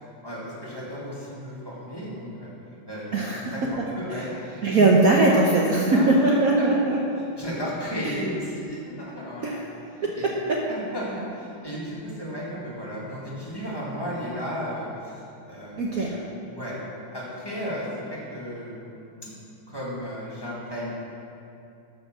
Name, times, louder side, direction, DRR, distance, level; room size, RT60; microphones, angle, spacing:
voice 1, 0.2-2.5 2.9-3.2 3.5-3.6 4.0-4.9 5.7-6.7 7.4-9.6 10.0-10.3 10.7-16.8 17.1-19.4 19.7-20.9, equal, 10° left, -7 dB, 2.0 m, -34 dB
voice 2, 3.1-3.5 4.1-4.2 4.6-7.0 9.4-9.6 10.0-10.1 10.5-10.6 15.8-16.1, right 2 dB, 55° right, -3 dB, 1.2 m, -20 dB
13.0 x 5.4 x 6.0 m, 2.6 s
omnidirectional pair, 2.1 m